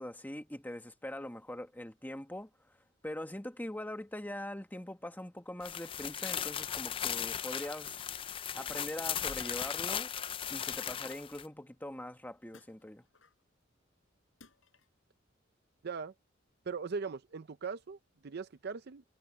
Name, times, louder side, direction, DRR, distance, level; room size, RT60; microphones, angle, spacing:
voice 1, 0.0-2.8 3.0-8.0 8.5-10.1 10.5-13.0, left 1 dB, 10° left, 1.5 m, -42 dB
sound 1, 5.6-11.4, left 9 dB, 30° left, 0.3 m, -37 dB
sound 2, 7.8-8.3 9.2-10.1 10.8-11.5 12.5-13.4 14.4-15.0, left 6 dB, 85° left, 4.8 m, -59 dB
voice 2, 15.8-16.1 16.7-19.0, right 5 dB, 55° right, 0.5 m, -40 dB
head